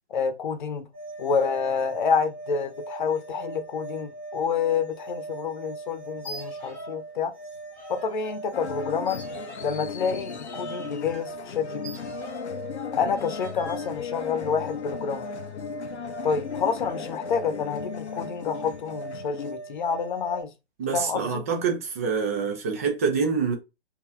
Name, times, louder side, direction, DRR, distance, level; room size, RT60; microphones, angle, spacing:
voice 1, 0.1-0.9 1.2-7.3 7.9-9.2 9.6-12.2 12.9-15.3 16.2-20.5 20.9-21.4, left 6 dB, 45° left, 0.8 m, -28 dB
sound 1, 0.9-20.4, right 2 dB, 30° right, 1.4 m, -40 dB
sound 2, 6.2-7.1 7.3-8.4 9.0-12.6 13.1-13.9, right 1 dB, 5° left, 1.6 m, -44 dB
sound 3, 8.5-19.5, left 8 dB, 80° left, 0.6 m, -37 dB
voice 2, 20.8-23.5, right 5 dB, 15° right, 0.4 m, -26 dB
5.3 x 2.8 x 2.5 m
figure-of-eight pair, 130°, 33 cm